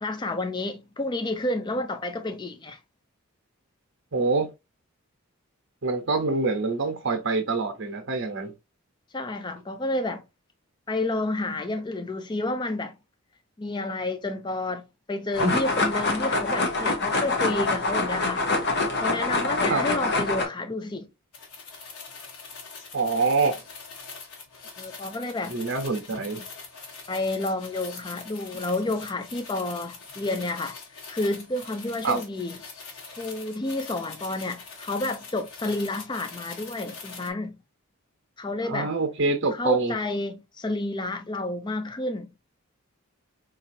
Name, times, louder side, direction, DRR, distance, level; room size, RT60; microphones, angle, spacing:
voice 1, 0.0-2.8 9.1-10.2 10.9-13.0 13.6-18.4 19.0-21.1 24.8-25.6 27.1-30.8 31.1-32.6 33.2-37.6 38.4-38.9 39.5-42.3, left 2 dB, 20° left, 0.4 m, -30 dB
voice 2, 4.1-4.5 5.8-8.5 15.4-15.6 19.7-19.9 22.9-23.6 25.5-26.4 28.5-28.6 32.0-32.2 38.6-39.9, right 3 dB, 55° right, 0.9 m, -25 dB
sound 1, 15.3-20.5, left 3 dB, 45° left, 0.8 m, -25 dB
sound 2, 21.3-37.3, left 4 dB, 85° left, 1.1 m, -43 dB
4.1 x 2.7 x 2.6 m
head